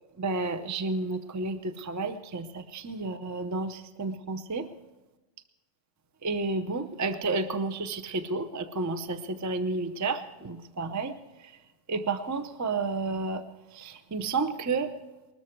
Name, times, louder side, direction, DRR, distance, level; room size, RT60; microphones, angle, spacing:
voice 1, 0.2-4.7 6.2-10.2 10.4-11.1 11.9-13.4 13.8-14.9, right 3 dB, 20° right, 10 dB, 0.4 m, -31 dB
20.0 x 13.5 x 4.6 m, 1.1 s
omnidirectional pair, 1.6 m